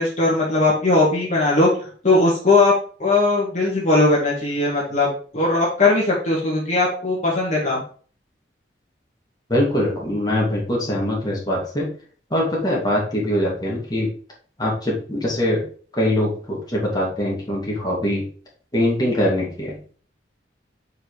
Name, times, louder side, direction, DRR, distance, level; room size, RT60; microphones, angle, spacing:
voice 1, 0.0-1.7 2.0-2.7 3.0-7.8, left 2 dB, 40° left, -4 dB, 1.8 m, -19 dB
voice 2, 9.5-11.9 12.3-14.1 14.6-15.6 16.0-18.2 18.7-19.8, left 1 dB, 20° left, -4 dB, 2.1 m, -22 dB
5.1 x 4.7 x 4.6 m, 0.43 s
head